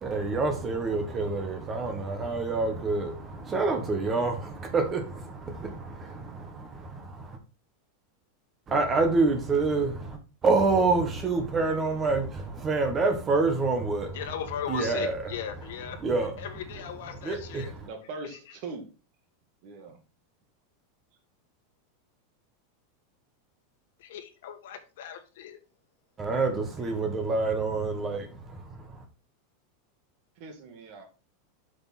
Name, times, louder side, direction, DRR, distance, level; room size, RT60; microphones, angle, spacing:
voice 1, 0.0-7.4 8.7-14.2 14.7-15.2 16.0-16.3 17.2-17.7 26.2-29.0, right 3 dB, 15° right, 1.3 m, -27 dB
voice 2, 14.1-17.7 18.3-18.4 24.0-25.6, left 9 dB, 65° left, 1.6 m, -38 dB
voice 3, 17.8-18.9 19.6-20.0 30.4-31.1, right 4 dB, 40° right, 2.1 m, -41 dB
7.8 x 6.0 x 4.2 m
supercardioid pair, 175°, 0 cm